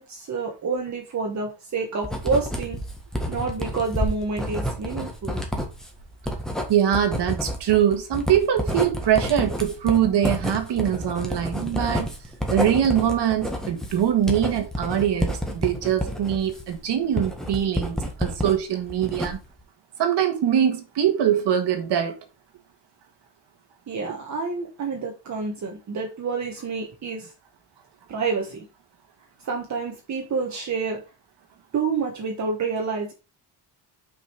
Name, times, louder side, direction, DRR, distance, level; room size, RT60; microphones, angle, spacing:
voice 1, 0.0-2.8 3.3-5.4 23.9-27.3 28.1-28.7 29.4-31.0 31.7-33.1, right 4 dB, 40° right, 1.4 m, -28 dB
Writing, 2.0-18.6 18.9-19.6, equal, ahead, 1.6 m, -29 dB
voice 2, 6.7-12.1 12.5-19.4 20.0-22.1, right 9 dB, 70° right, 1.8 m, -23 dB
6.4 x 5.4 x 4.6 m
cardioid pair, 165°, 43 cm